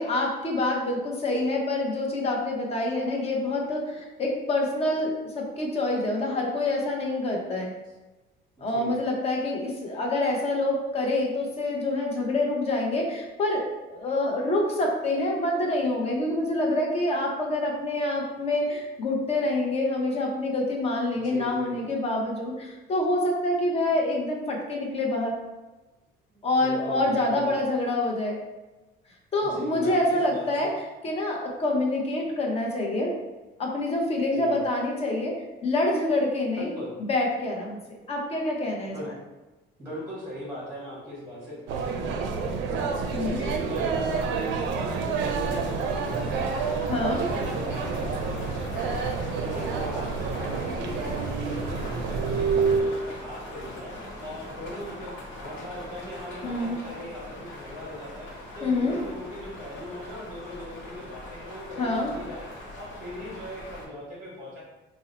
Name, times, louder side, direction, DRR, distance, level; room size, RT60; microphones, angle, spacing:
voice 1, 0.0-7.7 8.6-25.4 26.4-28.4 29.3-30.7 31.0-33.1 33.6-36.7 37.1-37.8 38.1-39.0 43.1-43.4 46.9-47.2 56.4-56.8 58.6-59.0 61.8-62.1, left 2 dB, 30° left, 0 dB, 0.6 m, -26 dB
voice 2, 8.6-8.9 21.2-21.8 26.3-27.5 29.4-30.7 34.3-34.6 36.6-36.9 38.9-39.1 39.8-46.8 47.1-50.9 51.3-53.9 54.2-58.3 58.5-62.5 62.8-64.6, left 1 dB, 10° right, -6 dB, 0.9 m, -39 dB
sound 1, 41.7-52.8, right 5 dB, 70° right, 0.4 m, -28 dB
sound 2, 45.5-63.9, left 1 dB, 85° left, 0.7 m, -41 dB
2.7 x 2.0 x 3.9 m, 1.1 s
cardioid pair, 145°, 20 cm